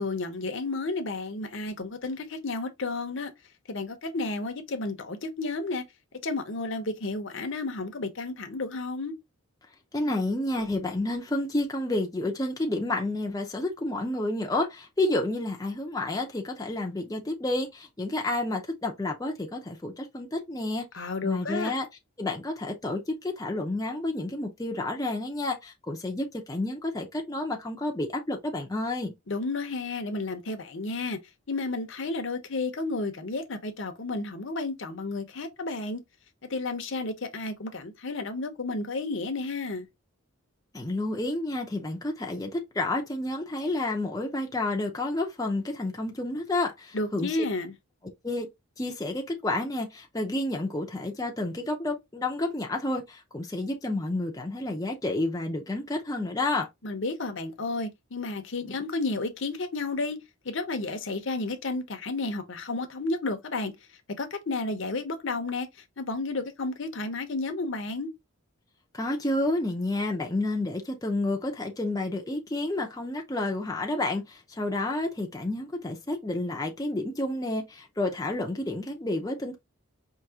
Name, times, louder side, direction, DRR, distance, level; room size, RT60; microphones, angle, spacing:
voice 1, 0.0-3.3 3.7-5.8 6.2-9.1 20.9-21.7 29.3-31.2 31.5-36.0 36.5-39.9 46.9-47.7 56.8-60.2 60.4-63.7 64.2-65.7 66.0-68.1, left 3 dB, 55° left, 0.8 m, -32 dB
voice 2, 9.9-20.8 21.2-21.9 22.2-29.1 40.7-47.4 48.2-48.5 48.8-56.7 68.9-79.6, left 2 dB, 15° left, 0.6 m, -30 dB
4.7 x 2.8 x 2.8 m
head